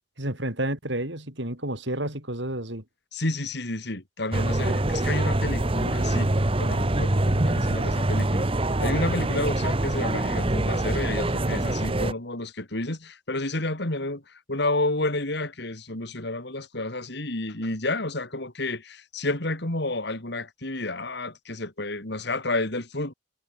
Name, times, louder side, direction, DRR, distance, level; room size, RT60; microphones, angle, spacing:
voice 1, 0.2-2.8, right 1 dB, 65° right, 7.2 m, -30 dB
voice 2, 3.1-6.3 6.6-23.1, left 2 dB, 60° left, 3.6 m, -30 dB
sound 1, 4.3-12.1, right 1 dB, 30° right, 1.2 m, -24 dB
head